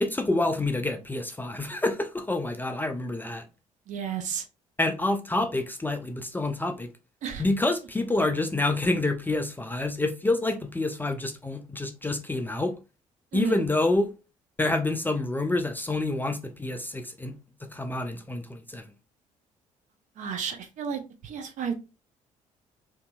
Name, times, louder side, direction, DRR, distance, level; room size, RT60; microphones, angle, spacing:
voice 1, 0.0-3.4 4.8-6.9 7.4-12.7 13.3-14.1 14.6-17.3 17.6-18.8, left 2 dB, 10° left, 0.4 m, -27 dB
voice 2, 3.9-4.4 7.2-7.4 13.3-13.6 20.2-21.7, right 7 dB, 45° right, 0.5 m, -32 dB
2.6 x 2.6 x 2.3 m
figure-of-eight pair, 50°, 18 cm